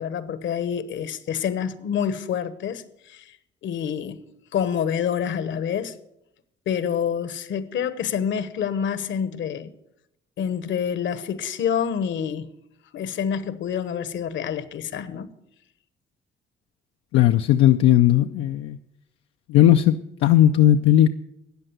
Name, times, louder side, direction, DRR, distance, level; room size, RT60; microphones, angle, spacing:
voice 1, 0.0-3.4 3.6-4.2 4.5-6.0 6.7-9.7 10.4-12.5 12.9-15.3, left 8 dB, 70° left, 1.1 m, -27 dB
voice 2, 17.1-18.8 19.5-21.1, left 12 dB, 90° left, 0.5 m, -17 dB
14.0 x 8.9 x 8.0 m
cardioid pair, 90°, 20 cm